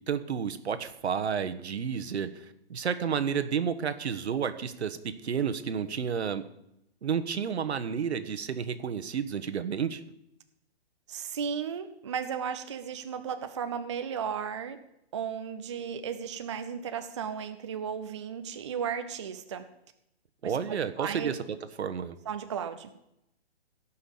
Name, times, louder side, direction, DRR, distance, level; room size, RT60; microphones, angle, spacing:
voice 1, 0.1-2.4 2.7-6.4 7.0-10.0 20.4-21.4 21.8-22.2, right 7 dB, 80° right, 10 dB, 1.3 m, -31 dB
voice 2, 11.1-14.8 15.1-19.6 20.4-20.5 21.0-21.3 22.3-22.9, right 7 dB, 30° right, 8 dB, 0.5 m, -35 dB
16.0 x 5.7 x 7.1 m, 0.81 s
hypercardioid pair, 170°, 33 cm